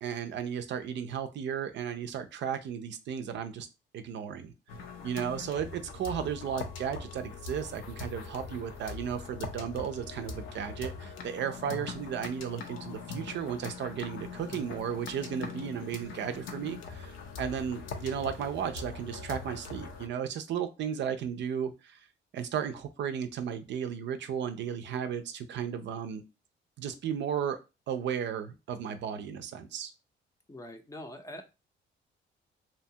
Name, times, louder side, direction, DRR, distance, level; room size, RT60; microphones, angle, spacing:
voice 1, 0.0-3.7 3.9-4.5 5.0-22.0 22.3-26.2 26.8-27.6 27.9-29.9, right 8 dB, 65° right, 8 dB, 0.4 m, -34 dB
sound 1, 4.7-20.1, left 5 dB, 80° left, 0.6 m, -42 dB
voice 2, 30.5-31.4, left 1 dB, 15° left, 5 dB, 0.5 m, -43 dB
2.8 x 2.2 x 2.7 m, 0.27 s
cardioid pair, 90°, 20 cm